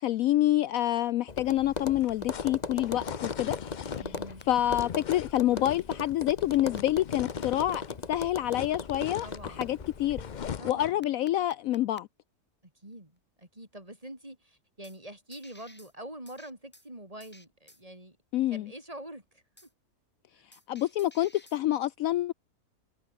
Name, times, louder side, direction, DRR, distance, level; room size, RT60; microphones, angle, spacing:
voice 1, 0.0-3.6 4.5-10.2 10.6-12.1 18.3-18.7 20.7-22.3, left 13 dB, 70° left, 0.9 m, -27 dB
Tap, 1.3-10.6, left 4 dB, 30° left, 1.2 m, -38 dB
sound 1, 1.7-8.1 8.3-11.0, left 8 dB, 55° left, 0.5 m, -41 dB
sound 2, 3.9-4.4 5.3-5.4 6.3-6.8 7.7-7.8 9.6-9.7 11.0-12.0 14.8-15.0 15.3-15.9 16.3-16.9 17.2-17.8 19.6-19.7 20.5-21.6, left 1 dB, 5° left, 2.2 m, -53 dB
voice 2, 4.0-4.4 9.2-9.8 10.6-11.1 12.6-18.2 18.5-19.4 20.3-20.4, right 1 dB, 20° right, 5.6 m, -45 dB
omnidirectional pair, 1.6 m